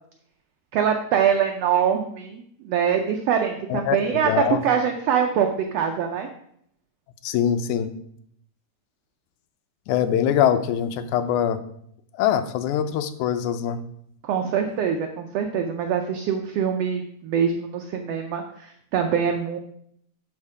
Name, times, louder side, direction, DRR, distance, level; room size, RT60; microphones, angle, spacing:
voice 1, 0.7-6.3 14.2-19.6, right 8 dB, 75° right, 4 dB, 1.6 m, -24 dB
voice 2, 3.7-4.6 7.2-7.9 9.9-11.6 12.2-13.8, left 9 dB, 90° left, 9 dB, 2.1 m, -23 dB
12.0 x 4.3 x 4.8 m, 0.69 s
omnidirectional pair, 3.4 m